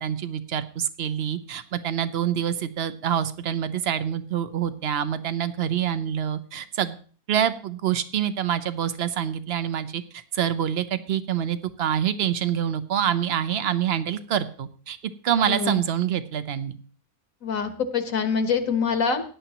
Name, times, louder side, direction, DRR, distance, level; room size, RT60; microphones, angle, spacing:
voice 1, 0.0-7.0 7.3-15.0 15.2-16.8, right 9 dB, 55° right, 13 dB, 0.8 m, -26 dB
voice 2, 15.5-15.8 17.4-19.2, left 5 dB, 65° left, 8 dB, 1.7 m, -25 dB
17.0 x 10.0 x 2.9 m, 0.42 s
omnidirectional pair, 1.5 m